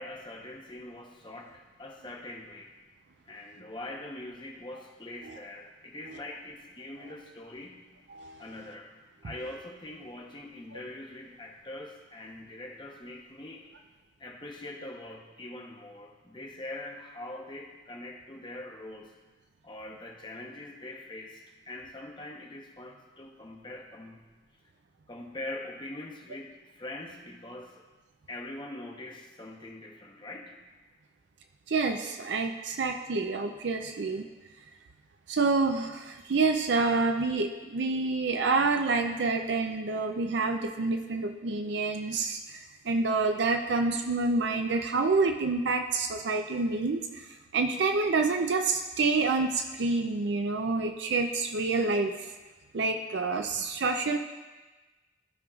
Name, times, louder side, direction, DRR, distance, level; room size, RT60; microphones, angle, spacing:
voice 1, 0.0-2.7 3.3-7.9 8.4-8.9 9.2-13.7 14.2-19.1 19.6-24.2 25.1-27.8 28.3-30.6, left 1 dB, 25° left, 1 dB, 0.8 m, -43 dB
voice 2, 31.7-34.3 35.3-47.3 47.5-52.3 52.7-54.2, right 3 dB, 65° right, 5 dB, 0.5 m, -28 dB
15.0 x 5.3 x 2.4 m, 1.2 s
head